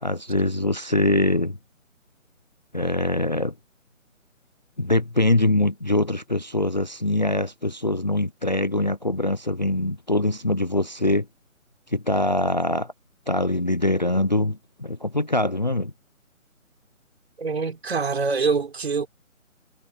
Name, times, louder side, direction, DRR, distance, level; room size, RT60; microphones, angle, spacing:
voice 1, 0.0-1.6 2.7-3.5 4.8-11.3 11.9-12.9 13.3-15.9, left 1 dB, 35° left, 0.6 m, -23 dB
voice 2, 17.4-19.1, right 4 dB, 50° right, 4.1 m, -24 dB
hypercardioid pair, 170°, 41 cm